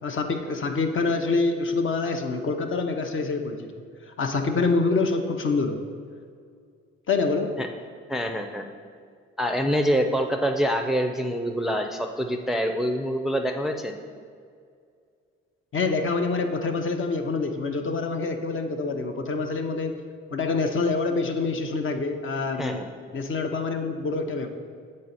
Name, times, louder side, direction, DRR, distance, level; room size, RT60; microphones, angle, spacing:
voice 1, 0.0-3.7 4.1-5.8 7.1-7.5 15.7-19.9 20.3-22.8 23.1-24.5, left 3 dB, 45° left, 5 dB, 0.7 m, -26 dB
voice 2, 8.1-8.7 9.4-14.0 22.6-22.8, equal, ahead, 4 dB, 0.5 m, -25 dB
7.5 x 4.1 x 4.1 m, 2.1 s
hypercardioid pair, 45°, 29 cm